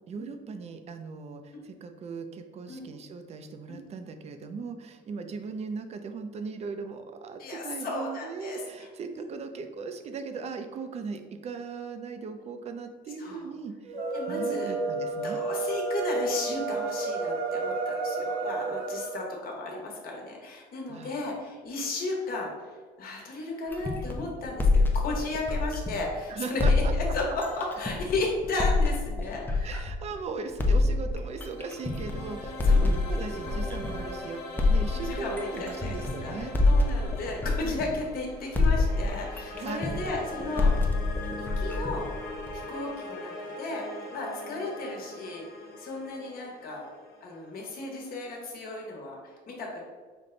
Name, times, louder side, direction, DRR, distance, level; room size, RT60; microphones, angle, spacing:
voice 1, 0.1-13.9 14.3-15.4 20.9-21.2 26.3-26.9 29.6-36.5 39.5-39.9, right 4 dB, 40° right, 8 dB, 0.5 m, -38 dB
voice 2, 7.4-8.9 13.2-13.4 14.1-14.7 15.2-22.7 23.0-26.6 26.9-29.8 32.6-32.9 34.9-36.0 36.2-40.7 41.4-42.0 42.7-43.8 44.1-45.4 45.8-46.9 47.2-49.8, left 2 dB, 60° left, -1 dB, 1.2 m, -34 dB
sound 1, 13.8-19.1, right 3 dB, 60° right, 0.9 m, -31 dB
sound 2, 23.7-26.1 26.6-30.1 30.6-34.1 34.6-38.2 38.5-42.6, left 3 dB, 10° left, 0.5 m, -26 dB
sound 3, 31.0-48.1, left 1 dB, 85° left, 1.3 m, -41 dB
5.2 x 2.2 x 3.8 m, 1.4 s
cardioid pair, 110°, 17 cm